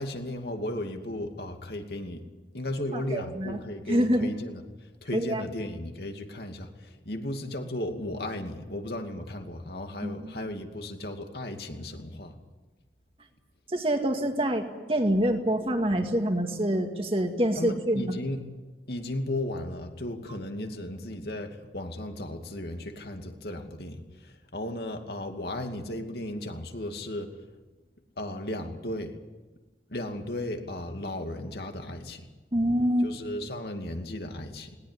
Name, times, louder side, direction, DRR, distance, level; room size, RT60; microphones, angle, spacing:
voice 1, 0.0-2.2 2.5-4.6 5.0-12.4 17.6-18.5 18.9-27.4 28.2-29.2 29.9-32.3 33.0-34.8, left 1 dB, 65° left, 4 dB, 2.5 m, -35 dB
voice 2, 2.9-3.6 3.9-4.3 5.1-5.4 10.0-10.4 13.7-18.2 32.5-33.1, equal, 30° right, 4 dB, 2.1 m, -26 dB
20.5 x 19.0 x 9.9 m, 1.2 s
head